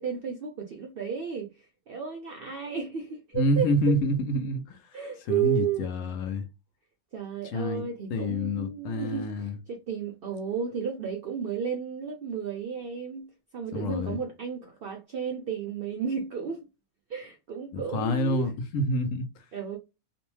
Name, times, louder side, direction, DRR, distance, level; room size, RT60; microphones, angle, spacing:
voice 1, 0.0-3.7 4.9-5.9 7.1-16.7 17.1-18.5 19.5-19.8, right 7 dB, 75° right, 0.5 m, -33 dB
voice 2, 3.3-5.0 5.3-6.4 7.4-9.6 13.7-14.2 17.7-19.5, left 1 dB, 70° left, 0.9 m, -28 dB
2.6 x 2.1 x 3.0 m
omnidirectional pair, 1.5 m